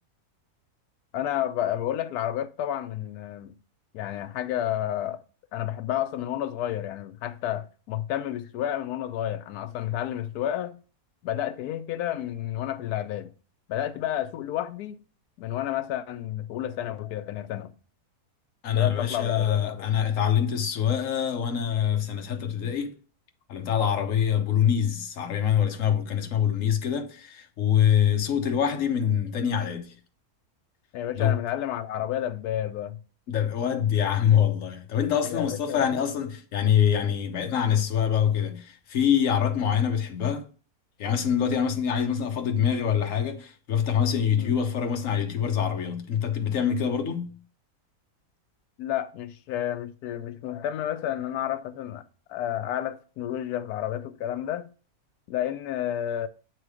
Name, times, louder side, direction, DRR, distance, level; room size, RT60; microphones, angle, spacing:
voice 1, 1.1-3.5 3.9-5.2 5.5-10.8 11.2-13.3 13.7-15.0 15.4-17.7 18.7-19.9 30.9-33.0 35.2-35.9 44.4-44.5 48.8-52.0 52.3-54.7 55.3-56.3, left 11 dB, 85° left, 1.1 m, -30 dB
voice 2, 18.6-22.9 23.5-29.9 31.2-31.4 33.3-40.5 41.0-47.4, left 8 dB, 60° left, 1.2 m, -25 dB
8.8 x 3.1 x 4.8 m
omnidirectional pair, 1.6 m